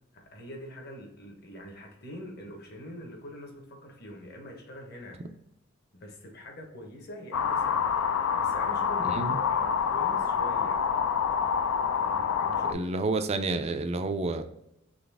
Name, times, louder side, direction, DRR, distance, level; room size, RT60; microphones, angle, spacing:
voice 1, 0.0-5.2 5.9-8.0 8.4-10.8 11.9-12.9, equal, 50° left, 2 dB, 1.1 m, -44 dB
sound 1, 7.3-12.7, left 7 dB, 75° left, 0.4 m, -27 dB
voice 2, 12.7-14.4, right 3 dB, 30° right, 9 dB, 0.4 m, -29 dB
4.0 x 3.3 x 3.4 m, 0.84 s
head